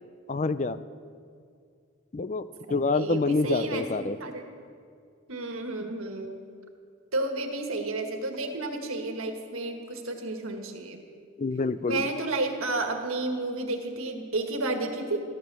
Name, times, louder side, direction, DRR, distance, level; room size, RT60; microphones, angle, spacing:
voice 1, 0.3-0.8 2.1-4.2 11.4-12.0, left 3 dB, 35° left, 14 dB, 0.4 m, -27 dB
voice 2, 2.7-4.4 5.3-6.4 7.1-11.0 11.9-15.2, right 2 dB, 85° right, 4 dB, 1.7 m, -31 dB
13.5 x 13.0 x 6.9 m, 2.2 s
head